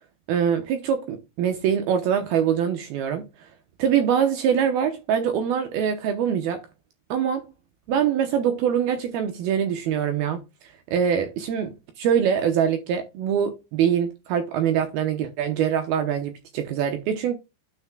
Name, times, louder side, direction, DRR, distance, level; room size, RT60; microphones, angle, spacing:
voice 1, 0.3-3.3 3.8-6.6 7.1-7.5 7.9-10.4 10.9-17.3, right 8 dB, 85° right, 2.1 m, -24 dB
12.0 x 5.9 x 2.2 m
omnidirectional pair, 5.5 m